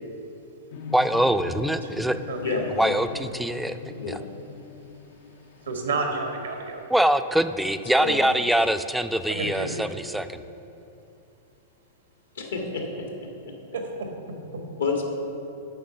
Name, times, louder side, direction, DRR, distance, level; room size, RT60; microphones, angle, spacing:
sound 1, 0.7-9.6, left 5 dB, 60° left, 0.4 m, -43 dB
voice 1, 0.9-2.2 2.8-3.8 4.1-4.2 6.9-10.4, right 1 dB, ahead, 10 dB, 0.4 m, -23 dB
voice 2, 1.9-2.6 5.6-6.9 9.3-9.8 13.7-13.8, right 3 dB, 85° right, 3 dB, 1.4 m, -30 dB
voice 3, 2.4-2.9 4.0-4.2 8.0-8.2 12.3-13.0 14.8-15.0, left 4 dB, 85° left, 1 dB, 1.6 m, -28 dB
7.8 x 5.5 x 6.6 m, 2.8 s
hypercardioid pair, 115°, 0 cm